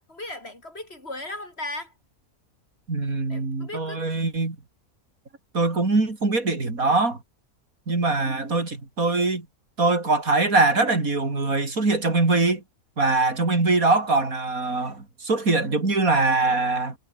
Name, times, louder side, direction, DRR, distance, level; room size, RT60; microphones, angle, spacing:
voice 1, 0.0-1.9 3.3-4.0, left 1 dB, 45° left, 5.5 m, -36 dB
voice 2, 2.9-4.6 5.5-7.2 7.9-9.5 9.8-12.6 13.0-17.0, right 3 dB, 80° right, 4.5 m, -22 dB
omnidirectional pair, 1.5 m